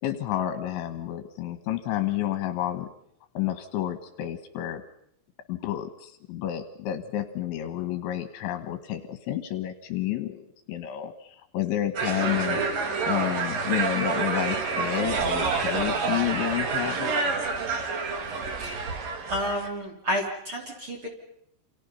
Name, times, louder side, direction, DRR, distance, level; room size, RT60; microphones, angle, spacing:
voice 1, 0.0-2.9 3.3-4.8 5.5-12.6 13.0-17.1, left 12 dB, 70° left, 9 dB, 3.3 m, -30 dB
sound 1, 12.0-19.7, right 4 dB, 50° right, 3.5 m, -28 dB
voice 2, 18.6-18.9 19.3-21.1, equal, 30° right, 0 dB, 3.4 m, -31 dB
28.5 x 28.0 x 5.6 m, 0.73 s
omnidirectional pair, 5.9 m